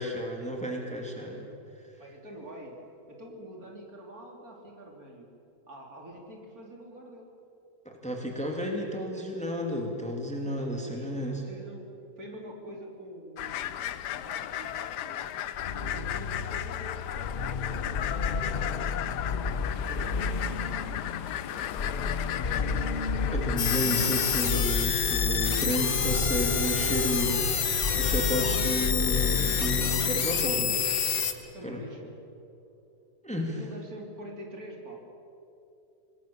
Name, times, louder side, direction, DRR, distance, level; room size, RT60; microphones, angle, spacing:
voice 1, 0.0-1.6 7.8-11.4 23.3-27.6 28.0-30.8 31.1-31.8 33.2-33.6, equal, 5° left, 1 dB, 2.7 m, -32 dB
voice 2, 2.0-2.8 3.1-5.3 5.7-7.3 8.6-9.4 10.6-11.8 12.2-13.8 14.1-15.4 15.8-18.6 19.5-21.2 21.5-21.7 22.0-22.9 23.9-24.2 31.2-32.1 33.6-35.0, right 1 dB, 60° right, 0 dB, 3.7 m, -46 dB
sound 1, 13.4-24.5, left 11 dB, 80° left, 1.3 m, -35 dB
sound 2, 15.5-31.2, left 4 dB, 40° left, 0.8 m, -32 dB
sound 3, 23.6-31.3, left 7 dB, 60° left, 1.6 m, -28 dB
26.0 x 19.5 x 7.1 m, 2.7 s
omnidirectional pair, 1.8 m